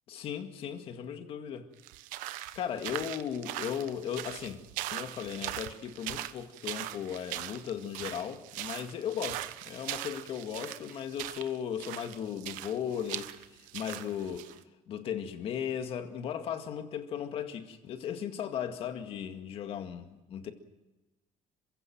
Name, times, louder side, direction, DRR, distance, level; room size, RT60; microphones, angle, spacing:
voice 1, 0.1-1.7 2.5-4.6 4.9-13.4 13.7-14.5 14.9-20.0 20.3-20.5, left 8 dB, 45° left, 2.0 m, -36 dB
sound 1, 1.8-14.6, right 15 dB, 85° right, 1.1 m, -40 dB
27.5 x 16.0 x 7.8 m
cardioid pair, 170°, 13 cm